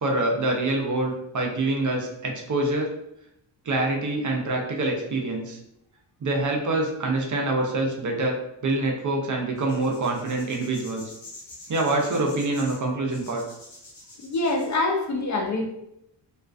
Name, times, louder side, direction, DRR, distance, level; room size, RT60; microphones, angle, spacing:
voice 1, 0.0-2.9 3.6-5.6 6.2-8.4 8.6-11.0 11.7-13.4, right 2 dB, 40° right, 1 dB, 0.5 m, -25 dB
sound 1, 9.6-14.8, left 2 dB, 75° left, 1.1 m, -46 dB
voice 2, 14.2-15.6, left 2 dB, 40° left, 1 dB, 0.4 m, -25 dB
2.3 x 2.2 x 2.4 m, 0.80 s
cardioid pair, 75°, 46 cm